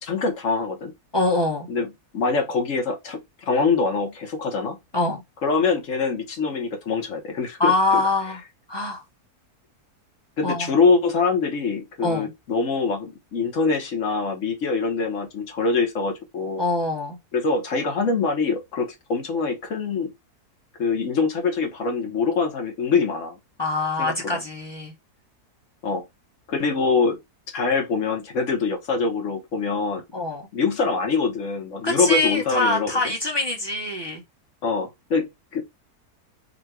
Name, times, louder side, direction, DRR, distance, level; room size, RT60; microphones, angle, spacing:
voice 1, 0.0-0.9 1.7-3.2 3.5-4.8 5.4-8.0 10.4-16.6 17.3-20.1 20.8-23.4 24.0-24.4 25.8-26.0 26.5-27.2 27.5-30.0 30.5-33.1 34.6-35.3 35.5-35.6, left 4 dB, 55° left, 1.3 m, -24 dB
voice 2, 1.1-1.7 4.9-5.2 7.6-8.4 8.7-9.0 10.4-10.7 12.0-12.3 16.6-17.2 23.6-24.9 30.1-30.4 31.8-34.2, left 2 dB, 20° left, 0.8 m, -24 dB
3.9 x 2.2 x 4.4 m
omnidirectional pair, 1.7 m